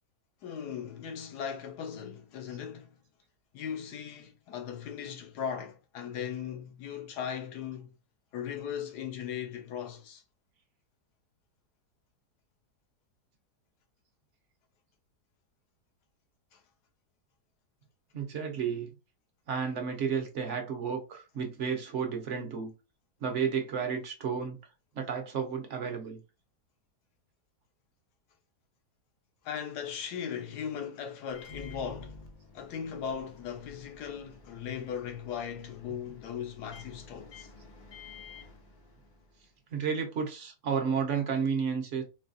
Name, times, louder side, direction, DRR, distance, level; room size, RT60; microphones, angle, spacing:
voice 1, 0.4-3.0 3.5-7.9 8.3-10.2 16.5-16.6 29.4-32.2 32.5-37.5, left 8 dB, 90° left, 1.3 m, -38 dB
voice 2, 18.1-18.9 19.5-22.7 23.2-24.6 24.9-26.2 39.7-42.0, right 6 dB, 55° right, 0.9 m, -32 dB
Microwave oven, 31.3-39.5, left 3 dB, 65° left, 0.4 m, -51 dB
3.8 x 2.3 x 2.6 m
omnidirectional pair, 1.7 m